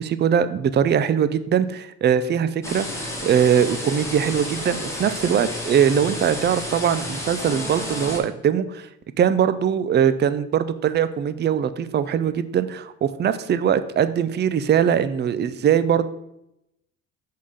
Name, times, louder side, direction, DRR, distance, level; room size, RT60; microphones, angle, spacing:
voice 1, 0.0-8.9 9.2-16.1, right 8 dB, 35° right, 13 dB, 0.4 m, -21 dB
sound 1, 2.6-8.2, left 1 dB, 10° left, 1.6 m, -31 dB
5.7 x 3.7 x 4.9 m, 0.82 s
cardioid pair, 90°, 30 cm